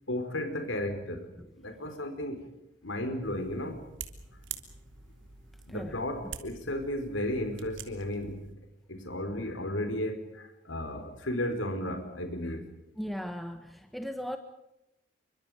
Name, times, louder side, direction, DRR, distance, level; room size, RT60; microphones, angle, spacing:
voice 1, 0.1-2.5 2.8-3.8 5.7-8.5 8.9-12.6, left 1 dB, 85° left, 7 dB, 4.7 m, -34 dB
sound 1, 3.2-8.5, right 7 dB, 80° right, 3.3 m, -46 dB
voice 2, 13.0-14.4, equal, ahead, 6 dB, 1.5 m, -37 dB
29.5 x 25.0 x 5.1 m, 0.87 s
head